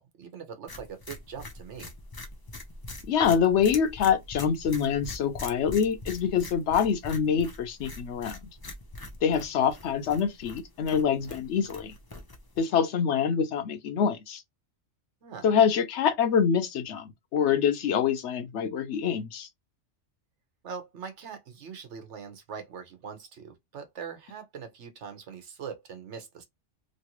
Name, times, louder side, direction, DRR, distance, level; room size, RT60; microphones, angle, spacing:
voice 1, 0.0-1.9 15.2-15.5 20.6-26.4, right 6 dB, 75° right, 1.2 m, -42 dB
sound 1, 0.7-12.7, left 2 dB, 25° left, 0.5 m, -43 dB
voice 2, 3.1-8.4 9.2-11.9 12.6-14.4 15.4-19.5, left 7 dB, 75° left, 1.0 m, -25 dB
3.1 x 2.7 x 2.9 m
omnidirectional pair, 1.2 m